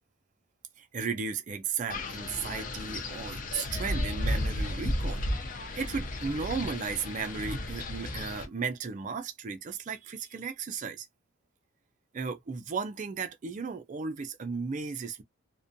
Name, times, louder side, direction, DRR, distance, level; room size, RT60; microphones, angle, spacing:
voice 1, 0.8-5.2 5.8-11.1 12.1-15.2, right 5 dB, 35° right, 0.3 m, -35 dB
Wind, 1.9-8.5, left 1 dB, 40° left, 0.5 m, -33 dB
2.4 x 2.1 x 2.5 m
head